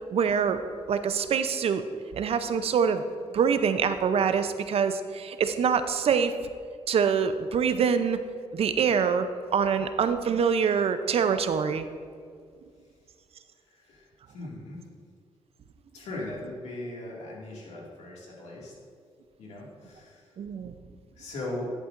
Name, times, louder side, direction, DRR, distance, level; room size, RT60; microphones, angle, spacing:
voice 1, 0.1-0.6 0.9-1.8 2.1-3.0 3.3-6.3 6.9-8.2 8.5-9.3 9.5-11.9 20.4-20.7, right 6 dB, 60° right, 10 dB, 0.6 m, -25 dB
voice 2, 13.7-14.8 15.9-18.7 19.4-20.3 21.2-21.7, left 1 dB, 85° left, -3 dB, 2.1 m, -39 dB
11.0 x 8.1 x 2.5 m, 2.1 s
cardioid pair, 85°, 11 cm